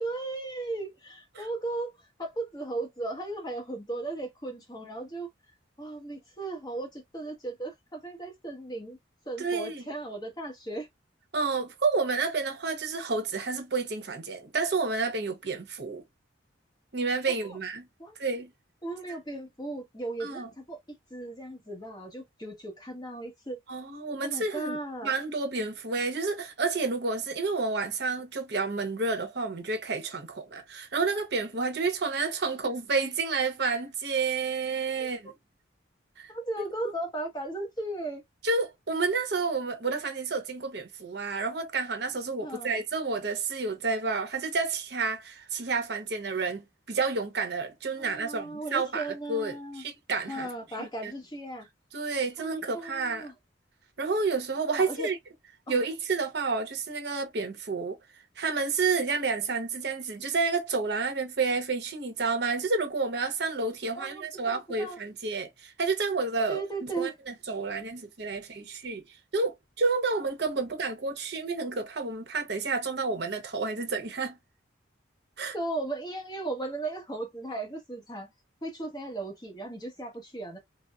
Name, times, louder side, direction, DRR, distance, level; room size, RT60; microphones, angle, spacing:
voice 1, 0.0-5.3 5.8-9.0 9.3-10.9 17.3-17.6 18.0-18.2 18.8-23.6 24.2-25.1 35.0-35.1 36.3-38.2 42.4-42.8 48.0-49.9 50.3-51.7 52.4-53.3 54.7-55.1 55.7-55.8 63.9-65.0 66.5-67.1 75.5-78.3 78.6-80.6, right 2 dB, 20° left, 1.0 m, -36 dB
voice 2, 9.4-9.8 11.3-16.0 16.9-17.9 18.2-18.5 20.2-20.5 23.7-35.3 36.2-36.3 38.4-50.5 50.8-51.1 51.9-53.3 54.0-55.2 55.7-58.0 58.4-69.0 69.3-74.4 75.4-75.5, right 4 dB, 55° right, 0.8 m, -30 dB
3.9 x 2.0 x 2.3 m
head